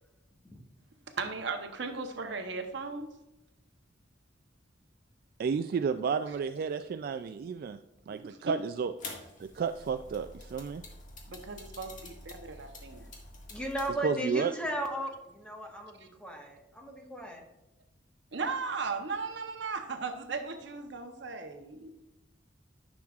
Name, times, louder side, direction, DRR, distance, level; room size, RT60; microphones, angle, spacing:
voice 1, 1.2-3.1 8.2-8.5 11.3-13.1 16.0-16.1 18.3-21.9, right 4 dB, 70° right, 0.9 m, -36 dB
voice 2, 5.4-7.8 8.1-8.9 9.4-10.8 14.0-14.5, right 6 dB, 55° right, 0.3 m, -32 dB
sound 1, 9.0-13.9, left 2 dB, 45° left, 1.6 m, -47 dB
voice 3, 13.5-17.4, right 1 dB, 5° left, 1.3 m, -36 dB
10.5 x 6.2 x 2.4 m
head